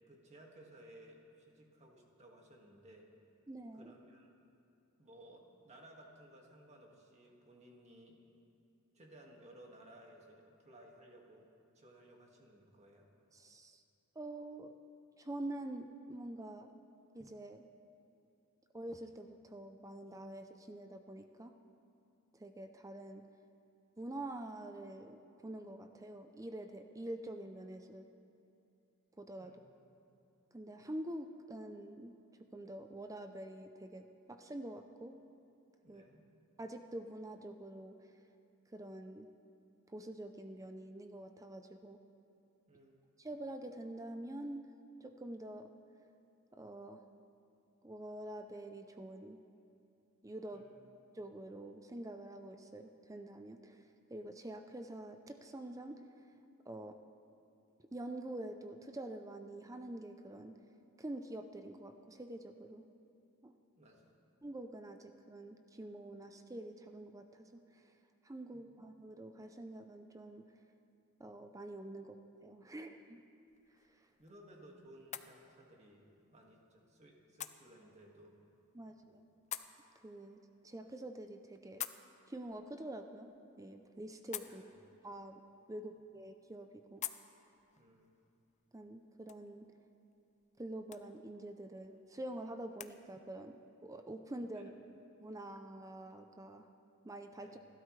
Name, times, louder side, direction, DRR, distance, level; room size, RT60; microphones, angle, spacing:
voice 1, 0.1-3.1 3.8-4.3 5.0-8.2 8.9-11.5 11.7-13.1 29.4-29.7 35.8-36.2 42.7-43.0 50.5-50.8 63.8-64.1 68.5-68.8 74.2-78.4 79.1-79.2 84.4-84.8 87.8-88.2 94.5-94.7 97.4-97.6, right 1 dB, 30° right, -1 dB, 2.0 m, -59 dB
voice 2, 3.5-3.9 13.3-13.8 14.2-14.7 15.2-16.7 17.1-17.6 18.7-21.6 22.3-23.2 24.0-28.1 29.2-29.6 30.5-32.2 32.5-35.2 35.9-36.0 36.6-38.2 38.7-39.3 39.9-42.0 43.2-44.7 45.0-45.7 46.5-47.1 47.8-49.4 50.2-50.7 51.1-56.3 56.6-57.0 57.8-60.6 61.0-62.9 63.4-63.5 64.4-68.0 68.2-70.5 71.2-72.2 72.4-73.2 73.7-74.1 78.7-79.0 80.0-81.8 82.3-83.3 83.6-84.6 85.0-85.4 85.7-87.0 88.7-89.7 90.6-94.7 95.2-96.7 97.0-97.6, right 1 dB, 15° right, 6 dB, 0.5 m, -46 dB
sound 1, 73.5-93.0, left 10 dB, 30° left, 0.5 m, -52 dB
29.0 x 12.5 x 3.3 m, 2.6 s
head